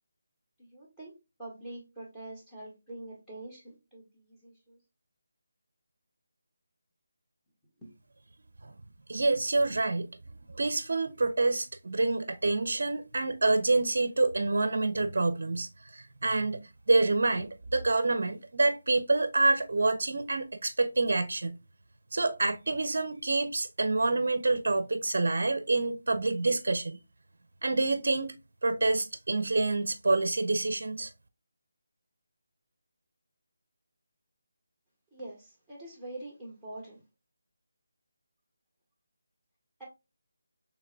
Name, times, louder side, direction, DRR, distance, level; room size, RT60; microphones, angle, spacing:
voice 1, 0.6-1.1 1.4-4.8 35.1-37.0 39.8-39.9, right 2 dB, 5° left, 1.7 m, -45 dB
voice 2, 9.1-10.1 10.5-16.6 16.9-21.6 22.1-27.0 27.6-31.1, right 2 dB, 60° right, 0.5 m, -27 dB
4.5 x 3.4 x 2.3 m
figure-of-eight pair, 155°, 0 cm